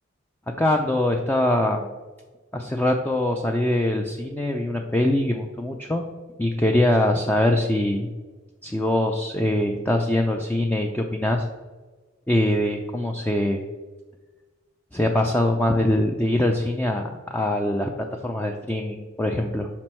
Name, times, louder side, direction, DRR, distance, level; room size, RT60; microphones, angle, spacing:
voice 1, 0.5-1.9 2.5-6.1 6.4-8.1 8.6-11.5 12.3-13.6 14.9-17.9 18.2-19.7, left 1 dB, 10° left, 2 dB, 0.4 m, -23 dB
5.9 x 5.3 x 4.4 m, 1.3 s
head